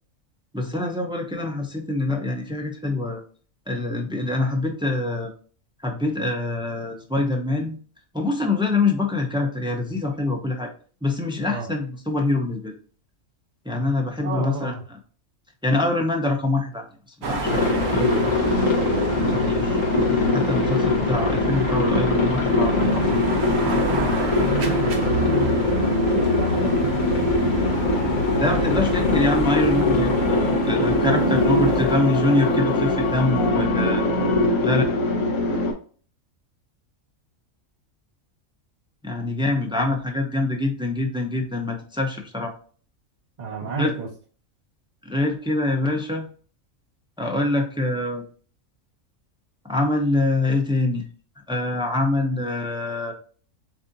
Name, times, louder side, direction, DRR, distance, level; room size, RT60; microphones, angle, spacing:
voice 1, 0.5-3.2 3.7-5.3 5.8-7.8 8.1-10.7 11.0-12.7 13.6-14.7 15.6-16.9 17.2-17.7 17.9-18.5 19.2-23.4 28.4-34.0 34.6-34.8 39.0-42.5 43.6-43.9 45.0-46.3 47.2-48.2 49.6-51.1 51.5-53.1, left 2 dB, 10° right, 2 dB, 0.3 m, -25 dB
voice 2, 14.2-14.8 24.4-25.6 26.1-27.4 31.0-31.5 43.4-44.1, right 3 dB, 35° right, -4 dB, 1.4 m, -31 dB
sound 1, 17.2-31.9, right 2 dB, 55° right, 1.1 m, -29 dB
Aircraft, 17.4-35.7, left 2 dB, 70° left, 1.5 m, -22 dB
sound 2, 27.7-34.5, left 7 dB, 90° left, 1.3 m, -33 dB
7.4 x 2.6 x 2.7 m, 0.41 s
omnidirectional pair, 1.4 m